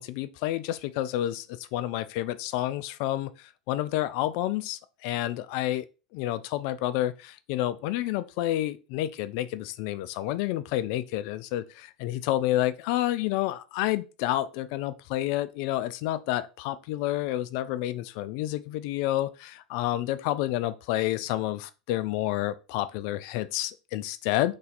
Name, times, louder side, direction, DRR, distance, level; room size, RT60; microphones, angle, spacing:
voice 1, 0.0-5.9 6.1-24.6, left 14 dB, 60° left, 0.4 m, -29 dB
3.1 x 2.8 x 4.0 m
hypercardioid pair, 90°, 4 cm